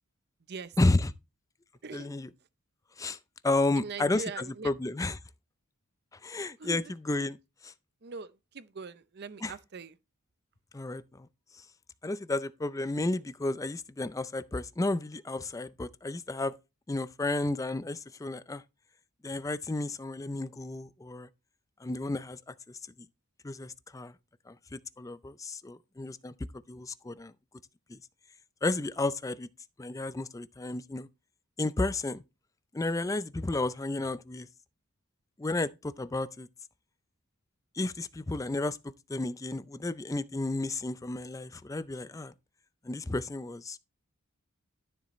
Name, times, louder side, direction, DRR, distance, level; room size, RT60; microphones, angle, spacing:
voice 1, 0.8-1.1 1.9-2.3 3.0-3.2 3.4-5.2 6.2-7.4 7.6-7.7 9.4-9.5 10.7-11.3 12.0-16.5 16.9-18.6 19.2-21.3 21.8-22.8 23.4-24.1 24.5-26.3 26.7-27.3 27.9-28.0 28.6-29.5 29.8-31.1 31.6-32.2 32.7-34.5 35.4-36.5 37.7-38.8 39.1-42.3 42.8-43.8, left 2 dB, 15° left, 0.4 m, -32 dB
voice 2, 3.7-4.7 6.6-6.9 8.0-9.9, right 5 dB, 50° right, 0.6 m, -42 dB
12.0 x 7.3 x 3.1 m
head